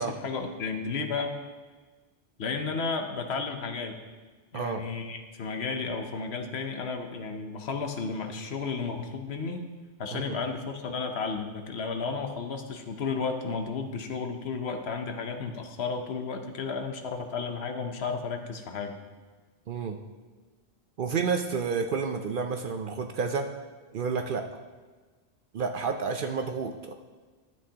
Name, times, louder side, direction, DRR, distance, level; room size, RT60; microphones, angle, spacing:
voice 1, 0.0-1.4 2.4-3.9 4.5-9.7 10.0-19.0, left 4 dB, 65° left, 5 dB, 1.0 m, -33 dB
voice 2, 21.0-23.5 23.9-24.4 25.5-26.9, right 5 dB, 60° right, 5 dB, 0.6 m, -30 dB
12.5 x 8.2 x 2.8 m, 1.4 s
omnidirectional pair, 1.2 m